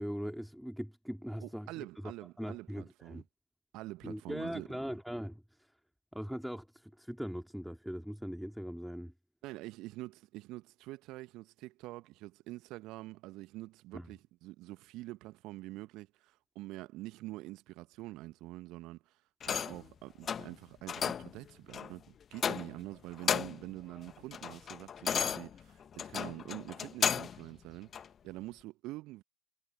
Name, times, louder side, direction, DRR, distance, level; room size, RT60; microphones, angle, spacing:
voice 1, 0.0-2.1 2.4-3.2 4.0-5.7 6.1-9.1 13.9-14.1, equal, ahead, 3.9 m, -40 dB
voice 2, 1.4-3.2 3.7-4.7 9.4-19.2 19.5-29.2, right 19 dB, 60° right, 1.7 m, -46 dB
sound 1, 19.4-19.9 20.3-20.5 20.9-21.3 21.7-21.9 22.4-22.9 23.1-23.7 24.1-27.4 27.9-28.1, left 8 dB, 40° left, 1.3 m, -34 dB
figure-of-eight pair, 55°, 0 cm